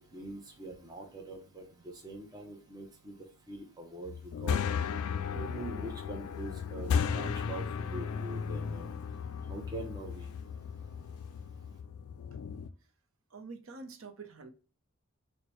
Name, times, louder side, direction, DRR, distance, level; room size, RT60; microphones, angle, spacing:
voice 1, 0.1-1.6 2.0-3.1 3.5-4.1 4.4-4.6 5.3-8.9 9.5-10.3, right 1 dB, 15° right, 0.6 m, -43 dB
sound 1, 4.1-12.7, left 6 dB, 75° left, 0.3 m, -35 dB
voice 2, 13.3-14.5, right 4 dB, 65° right, 0.6 m, -46 dB
4.4 x 2.1 x 3.0 m
head